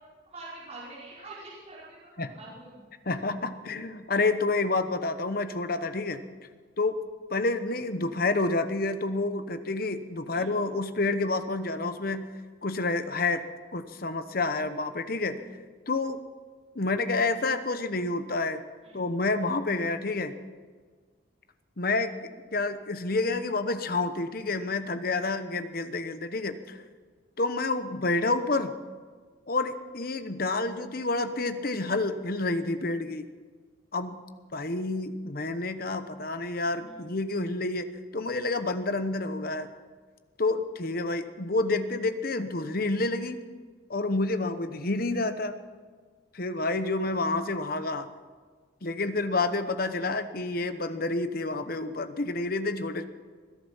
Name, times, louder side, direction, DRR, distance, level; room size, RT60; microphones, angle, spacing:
voice 1, 0.3-2.9 10.3-10.5 18.8-19.0 36.7-37.0, right 2 dB, 35° right, -8 dB, 5.1 m, -45 dB
voice 2, 3.1-6.2 6.8-7.0 7.3-12.3 12.6-13.4 13.7-15.4 15.9-16.2 16.7-18.6 18.9-20.4 21.8-26.8 27.4-28.8 29.5-33.3 33.9-34.2 34.5-37.9 38.1-39.7 40.4-43.4 43.9-45.6 46.3-48.1 48.8-53.0, left 3 dB, 50° left, 10 dB, 1.0 m, -29 dB
21.0 x 11.5 x 5.6 m, 1.5 s
head